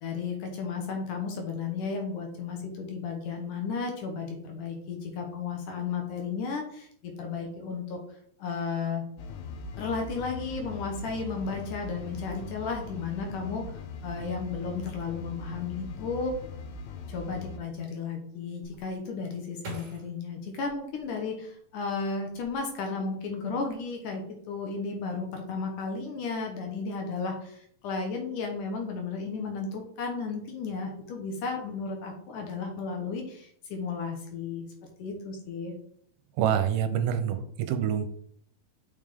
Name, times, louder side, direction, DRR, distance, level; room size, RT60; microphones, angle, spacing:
voice 1, 0.0-8.0 8.4-9.0 9.8-16.4 17.1-34.7 35.0-35.7, left 4 dB, 70° left, 2 dB, 2.3 m, -34 dB
sound 1, 9.2-17.6, left 4 dB, 85° left, 1.8 m, -40 dB
sound 2, 18.6-21.7 22.2-23.0 23.3-23.8, right 3 dB, 50° right, 2.9 m, -47 dB
voice 2, 36.4-38.1, right 9 dB, 85° right, 9 dB, 2.6 m, -26 dB
6.6 x 5.6 x 3.5 m, 0.64 s
omnidirectional pair, 4.3 m